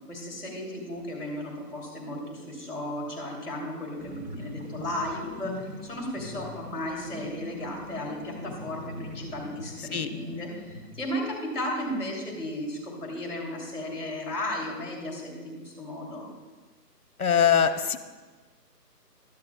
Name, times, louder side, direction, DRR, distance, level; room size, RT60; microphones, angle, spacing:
voice 1, 0.0-16.2, left 1 dB, 25° left, -2 dB, 2.4 m, -35 dB
sound 1, 4.0-11.0, left 2 dB, 40° right, 1.5 m, -42 dB
voice 2, 9.8-10.1 17.2-18.0, left 7 dB, 60° left, 9 dB, 0.8 m, -22 dB
13.0 x 10.5 x 2.3 m, 1.3 s
hypercardioid pair, 170°, 49 cm